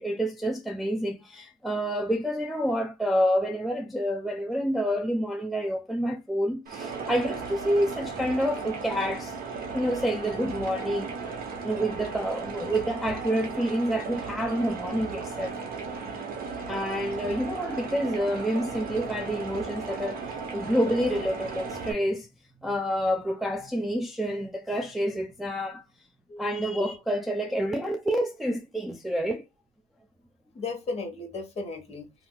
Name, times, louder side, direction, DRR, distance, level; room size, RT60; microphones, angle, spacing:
voice 1, 0.0-9.4 9.7-11.1 11.6-15.5 16.7-22.3 22.6-25.8 26.4-29.4, equal, ahead, 0.4 m, -28 dB
sound 1, 6.7-21.9, right 4 dB, 60° right, 1.1 m, -36 dB
voice 2, 26.3-27.0 30.5-32.1, left 3 dB, 40° left, 1.3 m, -36 dB
2.8 x 2.4 x 3.7 m
cardioid pair, 110°, 17 cm